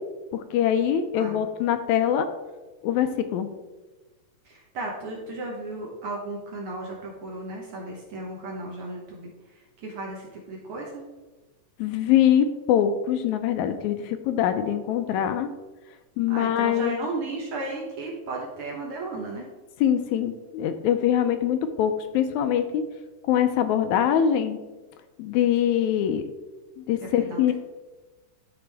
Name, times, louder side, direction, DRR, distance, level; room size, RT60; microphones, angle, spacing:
voice 1, 0.3-2.3 2.8-3.5 11.8-15.5 16.2-17.1 19.8-22.8 23.3-24.6 25.2-26.2 26.9-27.5, left 9 dB, 80° left, 9 dB, 1.8 m, -23 dB
voice 2, 4.4-11.0 16.3-19.5 27.2-27.5, right 2 dB, 60° right, -2 dB, 1.6 m, -35 dB
12.0 x 4.4 x 3.4 m, 1.2 s
omnidirectional pair, 3.5 m